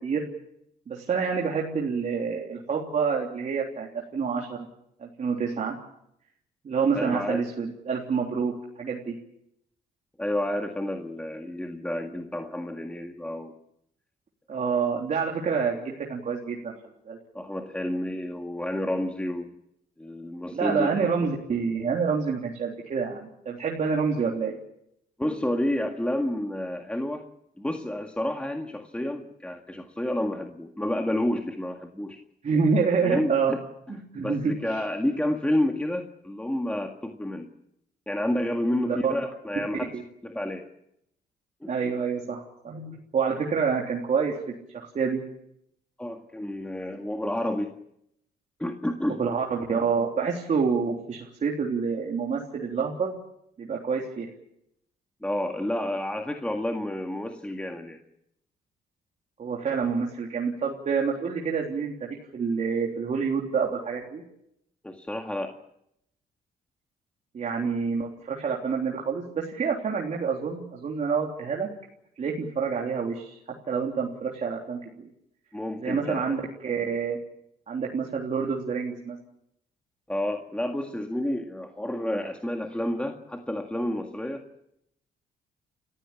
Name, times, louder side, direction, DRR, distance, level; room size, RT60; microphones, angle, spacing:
voice 1, 0.9-4.6 5.0-5.8 6.6-8.5 8.8-9.1 14.5-16.7 17.0-17.2 20.5-24.6 32.4-33.5 33.9-34.5 38.8-39.1 39.9-40.0 41.7-44.4 44.7-45.2 49.2-53.2 53.6-54.3 59.4-64.2 67.3-71.7 72.2-73.4 73.7-75.1 75.8-77.2 77.7-79.2, right 5 dB, 45° right, -2 dB, 3.5 m, -27 dB
voice 2, 6.9-7.4 10.2-13.5 17.3-19.5 20.0-20.9 25.2-27.2 27.6-32.2 33.0-33.6 33.9-37.5 38.1-40.7 41.6-41.9 46.0-47.8 48.6-49.2 55.2-58.0 64.8-65.6 75.5-76.2 80.1-84.4, left 1 dB, 5° left, 4 dB, 1.8 m, -30 dB
30.0 x 15.0 x 8.7 m, 0.79 s
cardioid pair, 100°, 17 cm